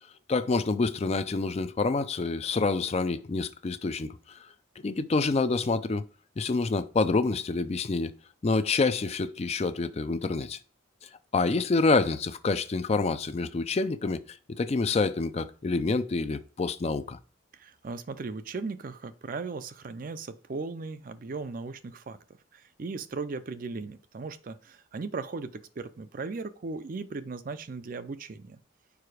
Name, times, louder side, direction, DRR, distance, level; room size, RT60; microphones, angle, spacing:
voice 1, 0.3-4.4 4.8-6.0 6.4-8.1 8.4-10.6 11.3-17.2, left 3 dB, 30° left, 0.4 m, -27 dB
voice 2, 17.5-22.2 22.5-28.6, right 4 dB, 45° right, 0.4 m, -37 dB
4.9 x 4.7 x 4.8 m
head